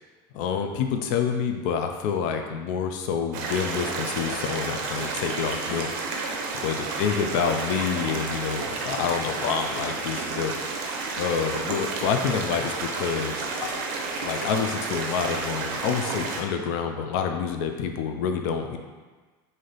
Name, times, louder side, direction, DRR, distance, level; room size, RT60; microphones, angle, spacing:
voice 1, 0.3-5.9 6.5-10.5 11.2-13.5 14.2-18.8, left 6 dB, 60° left, 5 dB, 0.4 m, -27 dB
sound 1, 3.3-16.4, right 3 dB, 60° right, 0.6 m, -31 dB
3.2 x 2.6 x 3.9 m, 1.4 s
supercardioid pair, 150°, 12 cm